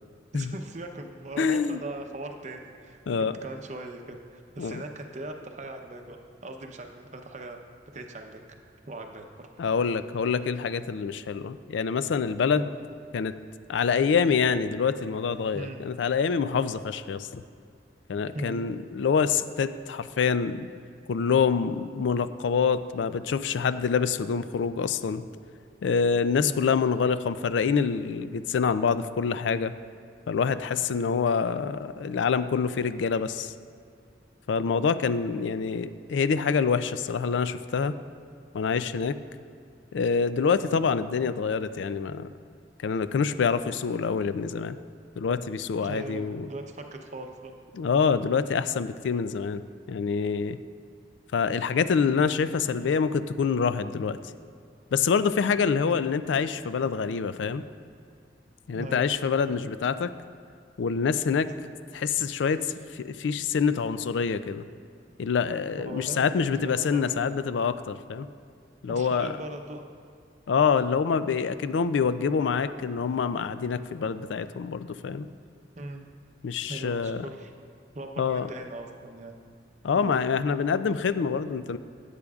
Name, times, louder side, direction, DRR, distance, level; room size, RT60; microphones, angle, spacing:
voice 1, 0.3-7.6 7.9-8.6 8.9-9.5 12.5-12.7 15.5-15.8 18.3-18.7 26.4-26.7 45.8-47.5 55.8-56.0 58.7-59.1 65.8-67.4 68.9-69.8 75.8-76.1 76.7-77.5 77.9-79.4 79.9-80.2, right 2 dB, 40° right, 4 dB, 0.7 m, -39 dB
voice 2, 1.4-1.8 3.1-3.4 4.6-4.8 9.6-12.7 13.1-13.3 13.7-17.4 18.1-20.7 21.1-25.2 25.8-29.7 30.3-33.5 34.5-38.0 38.5-39.2 39.9-42.3 42.8-44.8 45.2-46.5 47.7-49.6 49.9-50.6 51.3-54.2 54.9-57.6 58.7-60.1 60.8-61.5 61.9-62.7 62.9-64.6 65.2-68.3 68.8-69.3 70.5-75.3 76.4-77.3 78.2-78.5 79.8-81.8, left 6 dB, 80° left, 13 dB, 0.4 m, -26 dB
15.5 x 8.3 x 2.4 m, 2.3 s
head